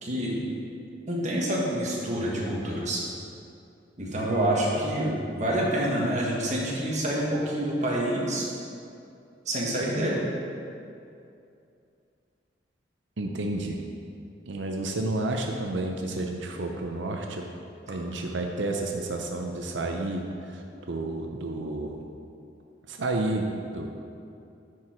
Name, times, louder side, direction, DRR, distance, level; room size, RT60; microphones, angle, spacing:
voice 1, 0.0-0.4 1.1-3.0 4.0-8.4 9.4-10.2, right 1 dB, 40° right, -3 dB, 1.5 m, -27 dB
voice 2, 13.2-13.8 14.5-17.5 17.9-22.1 22.9-23.9, right 2 dB, 80° right, 2 dB, 0.6 m, -31 dB
9.7 x 4.7 x 4.4 m, 2.6 s
head